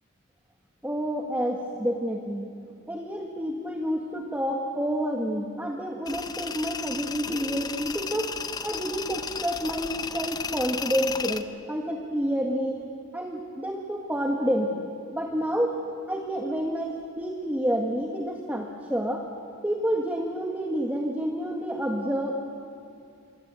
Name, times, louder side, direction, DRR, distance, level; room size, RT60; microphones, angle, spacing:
voice 1, 0.8-2.5 2.9-8.4 8.6-12.8 13.1-14.8 15.1-15.8 16.1-19.2 19.6-22.4, equal, 10° right, 1 dB, 1.5 m, -29 dB
Tools, 6.1-11.4, left 5 dB, 20° left, 0.8 m, -34 dB
26.0 x 23.0 x 8.2 m, 2.5 s
head